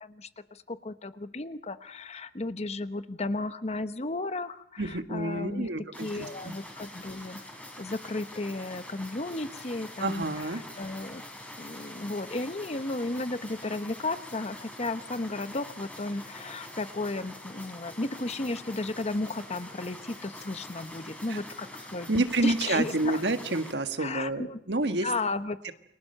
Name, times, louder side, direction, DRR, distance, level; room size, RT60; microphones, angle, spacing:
voice 1, 0.0-5.7 6.0-7.4 7.8-11.2 11.6-23.2 24.0-24.6 25.0-25.6, left 2 dB, 40° left, 12 dB, 1.0 m, -34 dB
voice 2, 4.8-6.5 10.0-10.6 21.3-21.4 22.1-25.1 25.6-25.7, right 2 dB, 75° right, 8 dB, 1.7 m, -29 dB
sound 1, 5.9-23.7, left 1 dB, 10° left, 3.9 m, -45 dB
29.5 x 23.5 x 6.7 m, 0.76 s
head